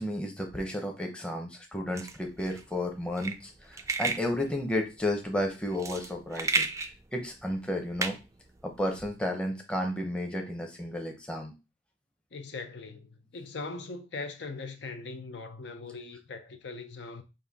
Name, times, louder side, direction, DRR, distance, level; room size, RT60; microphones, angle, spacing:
voice 1, 0.0-6.7 7.1-8.2 8.6-11.5, left 1 dB, 5° left, 0.7 m, -32 dB
sound 1, 1.9-9.1, right 4 dB, 15° right, 0.3 m, -34 dB
voice 2, 12.3-17.2, left 3 dB, 70° left, 0.6 m, -40 dB
5.4 x 2.6 x 3.4 m
head